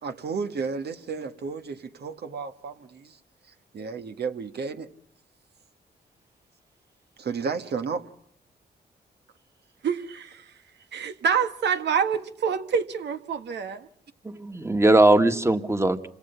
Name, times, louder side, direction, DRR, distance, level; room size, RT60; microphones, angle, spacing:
voice 1, 0.0-3.2 3.7-4.9 7.2-8.1, right 5 dB, 70° right, 1.7 m, -32 dB
voice 2, 9.8-10.4 10.9-13.9, right 7 dB, 90° right, 1.6 m, -26 dB
voice 3, 14.2-16.1, right 2 dB, 15° right, 1.8 m, -20 dB
28.0 x 26.0 x 5.7 m
cardioid pair, 90°, 17 cm